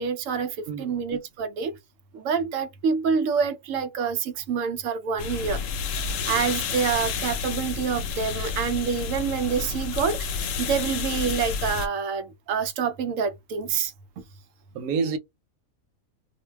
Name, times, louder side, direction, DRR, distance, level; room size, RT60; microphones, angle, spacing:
voice 1, 0.0-0.5 0.8-1.7 2.1-5.6 6.3-13.9, right 6 dB, 70° right, 0.9 m, -27 dB
voice 2, 0.7-1.0 6.1-6.2 14.7-15.2, right 5 dB, 90° right, 1.1 m, -28 dB
sound 1, 5.2-11.9, left 5 dB, 70° left, 0.9 m, -30 dB
2.6 x 2.1 x 3.2 m
omnidirectional pair, 1.5 m